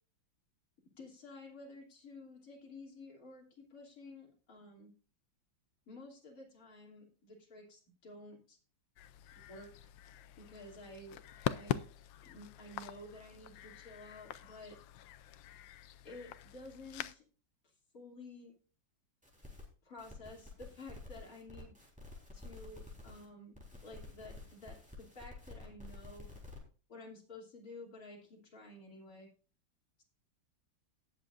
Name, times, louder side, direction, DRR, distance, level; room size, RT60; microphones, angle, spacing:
voice 1, 1.0-4.9 5.9-8.6 9.5-9.9 10.4-11.2 11.5-11.9 12.2-14.8 16.0-17.2 17.9-18.6 19.8-21.8 22.3-23.6 23.8-26.3 26.9-29.3, left 2 dB, 45° left, -2 dB, 3.5 m, -52 dB
sound 1, 9.0-17.1, left 12 dB, 80° left, 1.4 m, -43 dB
sound 2, 19.2-19.6 20.0-23.2 23.5-26.6, left 2 dB, 5° right, 3.9 m, -51 dB
18.5 x 7.3 x 2.6 m, 0.38 s
omnidirectional pair, 2.1 m